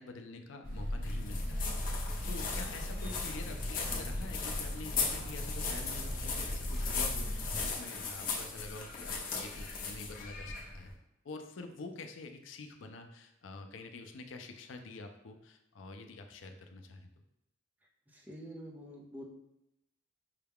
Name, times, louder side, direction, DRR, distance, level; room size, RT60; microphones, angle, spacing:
voice 1, 0.0-10.9 11.2-17.1, left 3 dB, 80° left, 5 dB, 0.5 m, -47 dB
sound 1, 0.6-7.7, equal, 50° right, 0.8 m, -38 dB
sound 2, 1.0-10.9, left 4 dB, 45° left, 0.7 m, -38 dB
voice 2, 18.1-19.2, equal, 10° right, -3 dB, 0.6 m, -47 dB
5.5 x 2.3 x 3.5 m, 0.84 s
head